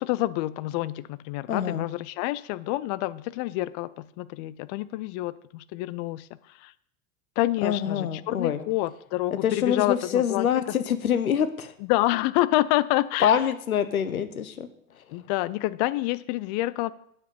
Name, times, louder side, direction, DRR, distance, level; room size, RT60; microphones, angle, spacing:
voice 1, 0.0-6.7 7.4-10.8 11.9-13.4 15.1-16.9, left 17 dB, 35° left, 17 dB, 0.4 m, -28 dB
voice 2, 1.5-1.9 7.6-8.6 9.4-11.7 13.2-14.7, left 8 dB, 75° left, 12 dB, 0.9 m, -25 dB
9.4 x 7.5 x 5.1 m, 0.69 s
figure-of-eight pair, 85°, 43 cm